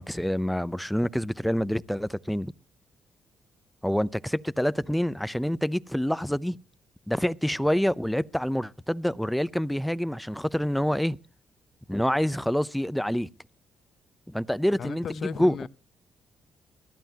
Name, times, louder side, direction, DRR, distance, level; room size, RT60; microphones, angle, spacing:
voice 1, 0.0-2.5 3.8-6.6 7.1-11.2 11.9-13.3 14.3-15.5, equal, ahead, 0.6 m, -27 dB
voice 2, 14.7-15.7, left 8 dB, 55° left, 0.9 m, -36 dB
22.0 x 14.0 x 2.9 m
cardioid pair, 90°, 0 cm